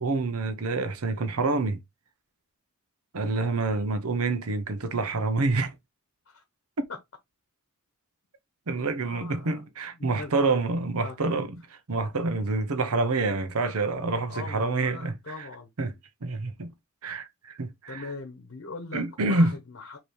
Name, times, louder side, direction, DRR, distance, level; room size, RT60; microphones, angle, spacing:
voice 1, 0.0-1.8 3.1-5.8 8.7-11.6 11.9-15.5 15.8-16.7 17.0-18.1 18.9-19.5, right 3 dB, 75° right, 0.8 m, -27 dB
voice 2, 9.1-9.7 10.0-10.6 11.0-11.5 14.3-15.7 17.9-20.0, left 3 dB, 55° left, 1.0 m, -41 dB
5.3 x 3.0 x 3.1 m
head